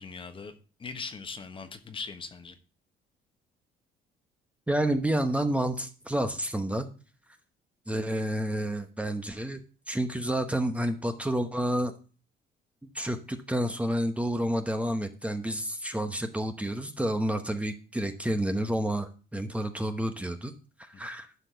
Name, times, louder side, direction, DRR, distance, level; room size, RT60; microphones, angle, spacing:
voice 1, 0.0-2.6 20.9-21.1, left 4 dB, 30° left, 1.2 m, -40 dB
voice 2, 4.7-6.9 7.9-9.6 9.9-11.9 12.9-20.5 20.8-21.3, right 1 dB, 10° right, 1.0 m, -29 dB
11.5 x 4.5 x 6.8 m
cardioid pair, 110°, 17 cm